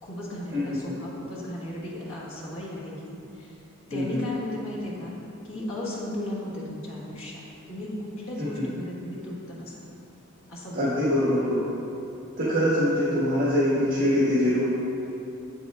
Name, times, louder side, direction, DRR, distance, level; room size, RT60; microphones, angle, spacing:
voice 1, 0.0-5.2 5.4-7.4 7.7-9.7 10.5-10.9, left 1 dB, 80° left, -6 dB, 1.5 m, -35 dB
voice 2, 10.7-11.6 12.4-14.6, left 1 dB, 50° right, -11 dB, 1.5 m, -24 dB
7.6 x 7.0 x 2.4 m, 2.7 s
head